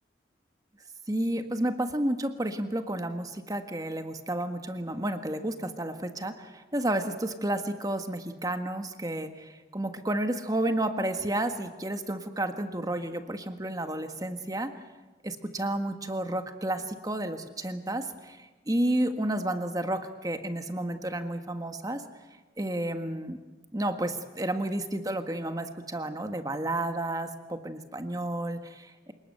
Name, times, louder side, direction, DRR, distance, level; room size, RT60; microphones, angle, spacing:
voice 1, 1.1-14.7 15.2-18.4 18.7-22.0 22.6-23.4 23.7-29.1, right 1 dB, 20° right, 7 dB, 1.6 m, -31 dB
27.5 x 19.5 x 7.9 m, 1.2 s
head